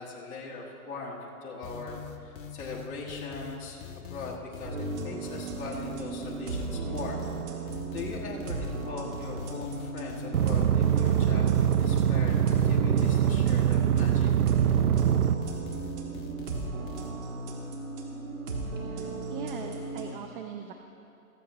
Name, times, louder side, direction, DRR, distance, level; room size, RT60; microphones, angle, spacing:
voice 1, 0.0-2.0 2.2-7.2 7.9-12.4 12.6-14.3, left 4 dB, 20° left, -3 dB, 1.3 m, -40 dB
sound 1, 1.6-17.1, left 6 dB, 35° left, 0.9 m, -43 dB
sound 2, 4.6-20.1, right 4 dB, 60° right, 2.1 m, -36 dB
sound 3, 10.3-15.3, right 10 dB, 80° right, 0.7 m, -23 dB
voice 2, 18.8-20.7, right 7 dB, 35° right, 4 dB, 0.7 m, -41 dB
15.0 x 14.5 x 3.0 m, 2.7 s
hypercardioid pair, 145°, 45 cm